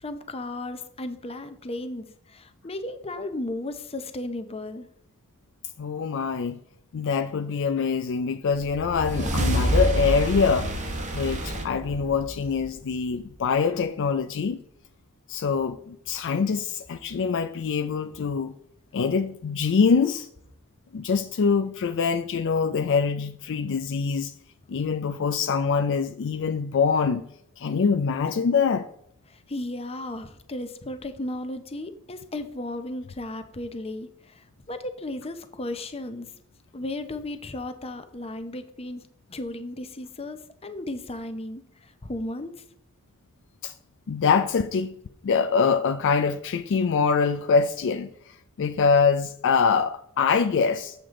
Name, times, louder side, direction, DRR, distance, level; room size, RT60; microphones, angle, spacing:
voice 1, 0.0-4.9 29.3-36.3 36.7-39.0 39.3-42.6, left 1 dB, 25° left, 0.7 m, -35 dB
voice 2, 5.8-6.6 6.9-10.7 11.1-14.6 15.3-18.5 18.9-20.3 20.9-24.3 24.7-27.2 27.6-28.9 43.6-43.7 44.1-45.0 45.2-50.9, left 5 dB, 55° left, 0.4 m, -24 dB
sound 1, 8.6-13.2, right 1 dB, 35° right, 1.1 m, -27 dB
7.6 x 6.7 x 3.7 m
head